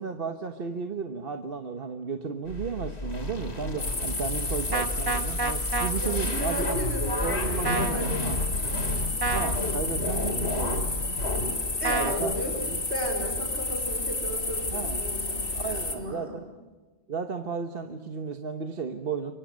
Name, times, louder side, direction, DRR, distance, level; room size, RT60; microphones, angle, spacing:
voice 1, 0.0-6.8 7.2-8.4 9.3-10.9 11.9-12.8 14.7-15.0 15.5-16.5 17.1-19.3, right 5 dB, 60° right, 6 dB, 1.4 m, -34 dB
sound 1, 2.5-11.5, left 2 dB, 75° left, 3.2 m, -33 dB
sound 2, 3.8-16.0, left 2 dB, 55° left, 2.9 m, -31 dB
sound 3, 4.7-5.9 7.6-8.0 9.2-9.5 11.8-12.2, right 3 dB, 20° right, 1.2 m, -28 dB
voice 2, 5.9-8.2 8.6-9.0 11.4-12.5 12.9-16.4, equal, 75° right, -1 dB, 5.1 m, -35 dB
28.0 x 24.5 x 6.4 m, 1.2 s
omnidirectional pair, 1.1 m